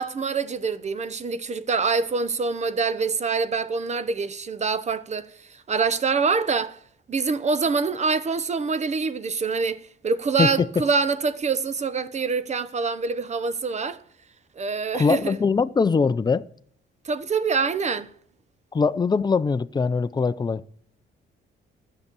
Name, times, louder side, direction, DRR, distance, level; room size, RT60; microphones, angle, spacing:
voice 1, 0.0-6.8 7.1-14.0 14.6-15.3 17.0-18.1, right 4 dB, 35° right, 0.8 m, -25 dB
voice 2, 10.4-10.8 14.9-16.5 18.7-20.6, left 5 dB, 20° left, 0.5 m, -22 dB
13.0 x 6.7 x 6.9 m
cardioid pair, 90°, 20 cm